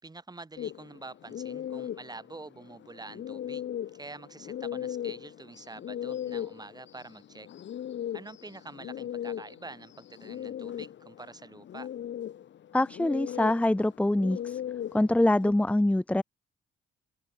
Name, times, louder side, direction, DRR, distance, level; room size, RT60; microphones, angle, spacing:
voice 1, 0.0-7.5 8.1-11.9, right 3 dB, 20° right, 4.9 m, -46 dB
sound 1, 0.6-15.5, left 10 dB, 65° left, 5.5 m, -38 dB
voice 2, 12.7-14.6 14.9-16.2, left 1 dB, 5° left, 1.1 m, -24 dB
open air
cardioid pair, 90°, 20 cm